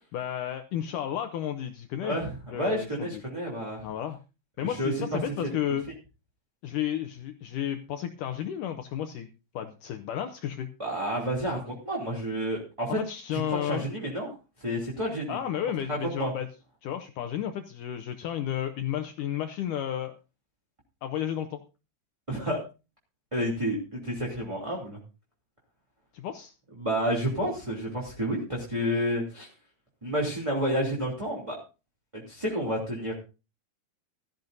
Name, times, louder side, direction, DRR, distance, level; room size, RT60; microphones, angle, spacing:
voice 1, 0.1-2.2 2.5-3.2 3.8-4.2 4.6-5.8 6.6-10.7 12.9-13.9 15.3-16.5 16.8-20.1 21.0-21.6 26.1-26.5, left 10 dB, 80° left, 8 dB, 1.9 m, -32 dB
voice 2, 2.0-3.9 4.6-5.2 10.8-13.0 13.3-14.3 14.6-15.4 15.9-16.3 22.3-22.6 23.3-25.0 26.8-29.5 30.0-31.6 32.1-33.1, equal, 10° right, -3 dB, 2.1 m, -30 dB
16.5 x 13.5 x 2.6 m, 0.31 s
omnidirectional pair, 4.6 m